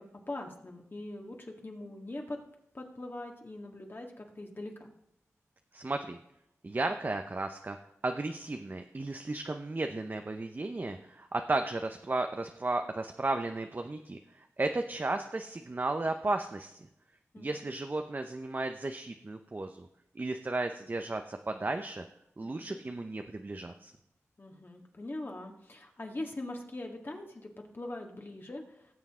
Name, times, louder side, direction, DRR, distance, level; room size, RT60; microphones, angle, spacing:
voice 1, 0.0-2.4 2.7-4.9 17.3-17.5 22.4-22.8 24.4-27.5 27.7-28.6, left 2 dB, 40° left, 2 dB, 2.0 m, -42 dB
voice 2, 5.7-6.2 6.6-7.8 8.0-16.9 17.4-19.9 20.2-22.0 22.4-23.9, right 2 dB, 35° right, 6 dB, 0.7 m, -34 dB
18.0 x 7.1 x 3.7 m, 0.79 s
cardioid pair, 45°, 6 cm